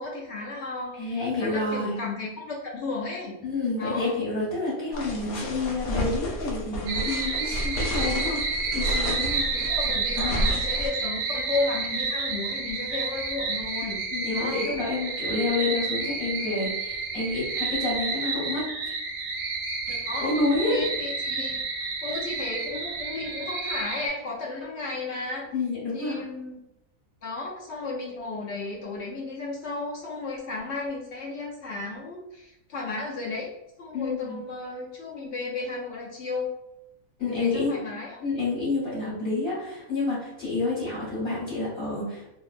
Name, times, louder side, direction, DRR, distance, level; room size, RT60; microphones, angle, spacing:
voice 1, 0.0-0.9 1.3-3.3 3.8-4.1 9.5-14.7 19.9-20.3 20.7-21.6 22.0-25.5 25.9-26.6 27.2-33.5 33.8-36.5 37.3-38.2, left 3 dB, 65° left, -4 dB, 0.7 m, -34 dB
voice 2, 1.0-2.0 3.4-8.4 8.7-9.4 10.2-10.5 14.1-18.7 20.2-20.8 25.5-26.2 33.9-34.4 37.2-37.7 38.2-42.2, left 3 dB, 45° left, -10 dB, 1.1 m, -29 dB
sound 1, 4.9-10.9, equal, 80° left, 1.0 m, -31 dB
sound 2, 6.9-24.1, right 4 dB, 65° right, 0.8 m, -30 dB
2.5 x 2.1 x 2.4 m, 0.85 s
omnidirectional pair, 1.5 m